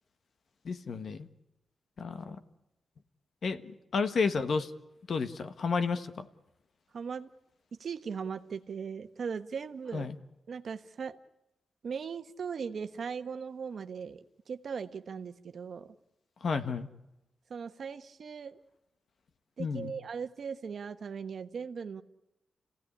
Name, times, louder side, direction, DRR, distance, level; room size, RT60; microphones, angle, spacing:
voice 1, 0.6-1.3 2.0-2.4 3.4-4.7 5.1-6.3 9.9-10.1 16.4-16.9 19.6-19.9, left 5 dB, 55° left, 10 dB, 1.4 m, -31 dB
voice 2, 6.9-7.3 7.8-10.1 10.5-11.2 11.8-15.9 17.5-18.6 19.6-22.0, right 6 dB, 55° right, 9 dB, 1.2 m, -39 dB
30.0 x 16.5 x 9.9 m, 0.90 s
wide cardioid pair, 160°, 0 cm